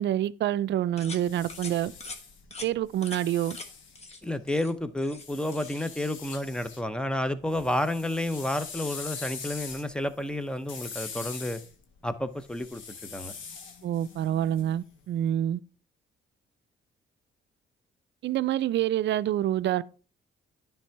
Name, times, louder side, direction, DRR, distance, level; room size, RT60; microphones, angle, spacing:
voice 1, 0.0-1.9 2.6-3.6 13.8-15.6 18.2-19.8, right 12 dB, 65° right, 0.4 m, -27 dB
sound 1, 1.0-4.5 5.2-6.8 7.2-15.1, left 5 dB, 75° left, 1.4 m, -43 dB
sound 2, 1.0-1.2 1.5-1.7 2.0-2.2 2.5-2.7 3.0-3.2 3.5-3.7 3.9-4.2 4.5-5.3 5.5-5.8, left 3 dB, 30° left, 1.2 m, -42 dB
voice 2, 4.2-11.6 12.0-13.3, left 1 dB, 5° left, 0.7 m, -31 dB
10.0 x 3.4 x 4.6 m
cardioid pair, 90°, 20 cm